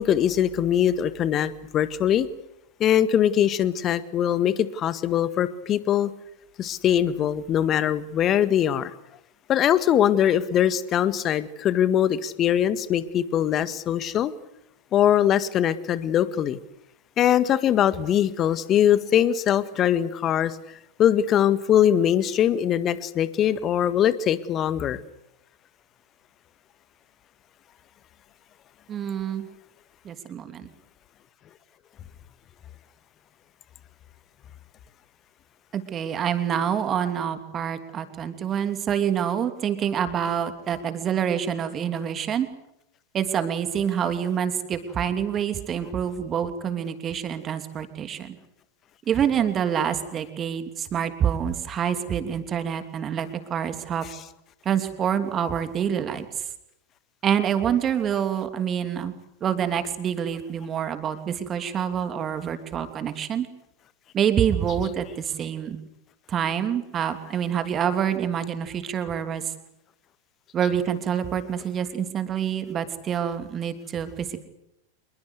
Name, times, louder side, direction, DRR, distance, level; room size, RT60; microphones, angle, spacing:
voice 1, 0.0-2.3 2.8-6.1 6.6-8.9 9.5-14.3 14.9-16.6 17.2-20.6 21.0-25.0 54.0-54.2 64.8-64.9, left 10 dB, 30° left, 14 dB, 1.7 m, -22 dB
voice 2, 28.9-29.5 30.0-30.7 35.7-42.5 43.1-48.3 49.1-54.1 54.6-56.3 57.2-59.1 59.4-63.5 64.1-65.8 66.3-69.4 70.5-74.5, right 8 dB, 25° right, 9 dB, 3.0 m, -26 dB
26.5 x 22.0 x 8.3 m, 0.81 s
figure-of-eight pair, 90°, 0 cm